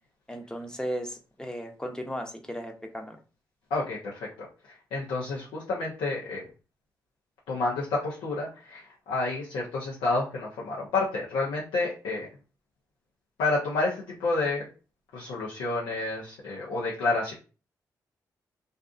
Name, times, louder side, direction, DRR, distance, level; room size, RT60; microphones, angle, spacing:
voice 1, 0.3-3.2, equal, 10° left, 4 dB, 0.7 m, -36 dB
voice 2, 3.7-6.4 7.5-12.3 13.4-14.7 15.1-17.3, left 3 dB, 90° left, -5 dB, 0.6 m, -30 dB
2.5 x 2.4 x 2.4 m, 0.34 s
supercardioid pair, 50°, 8 cm